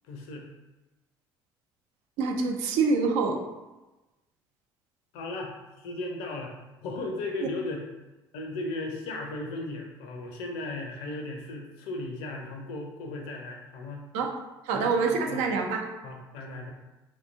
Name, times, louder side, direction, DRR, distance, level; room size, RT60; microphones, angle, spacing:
voice 1, 0.0-0.5 5.1-6.5 6.8-7.9 8.3-14.1 14.7-14.9 15.3-15.5 16.0-16.7, left 2 dB, 60° left, 2 dB, 0.5 m, -36 dB
voice 2, 2.2-3.4 14.1-14.3 14.7-15.8, right 4 dB, 60° right, 2 dB, 0.4 m, -25 dB
2.7 x 2.2 x 2.5 m, 1.1 s
figure-of-eight pair, 55°, 12 cm